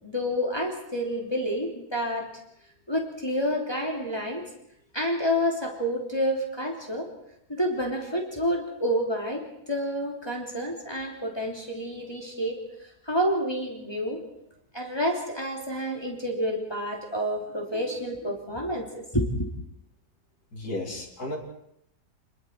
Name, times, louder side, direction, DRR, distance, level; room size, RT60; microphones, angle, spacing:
voice 1, 0.0-2.3 2.9-4.4 4.9-7.1 7.5-12.6 13.1-14.2 14.7-19.5, equal, 15° left, 0 dB, 3.3 m, -29 dB
voice 2, 20.5-21.4, left 2 dB, 65° left, 0 dB, 4.5 m, -33 dB
29.5 x 21.0 x 4.7 m, 0.76 s
omnidirectional pair, 1.8 m